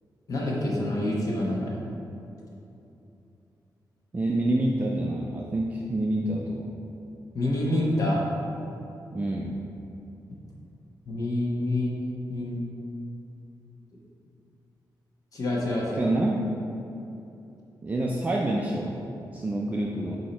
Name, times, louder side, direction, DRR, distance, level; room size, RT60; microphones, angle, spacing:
voice 1, 0.3-1.7 7.3-8.3 11.1-11.9 12.3-12.6 15.3-16.1, left 1 dB, 50° left, -4 dB, 1.0 m, -27 dB
voice 2, 4.1-6.7 9.1-9.6 15.9-16.4 17.8-19.0 19.3-20.2, right 1 dB, 20° right, -2 dB, 0.4 m, -27 dB
7.2 x 2.8 x 5.3 m, 2.8 s
wide cardioid pair, 165°, 8 cm